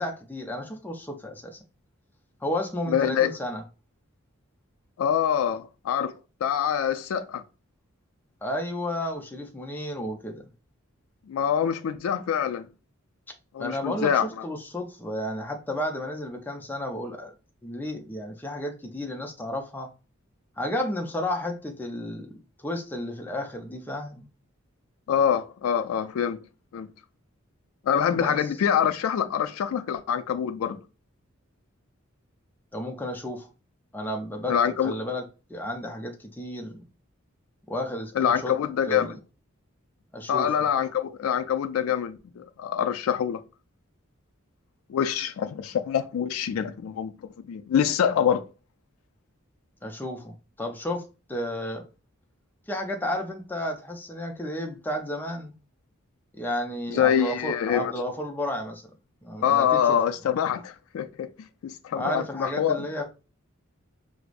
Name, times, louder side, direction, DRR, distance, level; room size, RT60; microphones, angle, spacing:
voice 1, 0.0-1.6 2.4-3.6 8.4-10.5 13.6-17.3 17.6-19.9 20.6-24.3 28.1-28.5 32.7-33.5 33.9-34.5 34.8-35.2 35.5-36.9 37.7-38.5 38.9-39.1 40.1-40.5 49.8-51.8 52.7-55.5 56.3-58.9 59.2-60.0 61.9-63.0, left 1 dB, 10° left, 0.4 m, -32 dB
voice 2, 2.9-3.3 5.0-6.1 6.4-7.4 11.3-12.7 13.5-14.5 25.1-26.4 26.7-26.9 27.8-30.8 34.5-34.9 38.2-39.1 40.3-43.4 44.9-47.1 47.5-48.4 56.9-57.9 59.4-61.3 61.6-62.9, left 8 dB, 85° left, 0.3 m, -25 dB
4.7 x 2.0 x 2.4 m
head